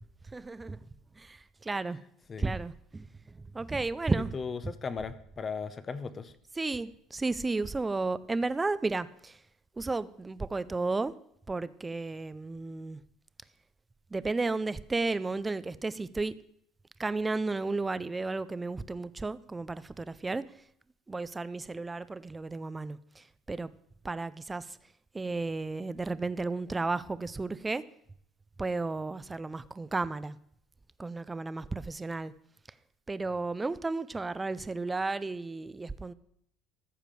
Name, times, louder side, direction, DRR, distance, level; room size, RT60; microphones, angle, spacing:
voice 1, 0.3-0.8 1.2-1.4 1.6-2.0 2.4-3.1 3.5-4.3 6.6-9.3 9.8-11.1 11.5-13.0 14.1-16.4 17.0-20.4 21.1-23.7 24.0-24.7 25.1-27.8 28.6-30.4 31.0-32.3 33.1-36.1, right 3 dB, 15° right, 16 dB, 0.5 m, -33 dB
voice 2, 4.3-6.3, left 5 dB, 25° left, 14 dB, 0.8 m, -37 dB
14.0 x 5.1 x 7.6 m, 0.69 s
cardioid pair, 125°, 0 cm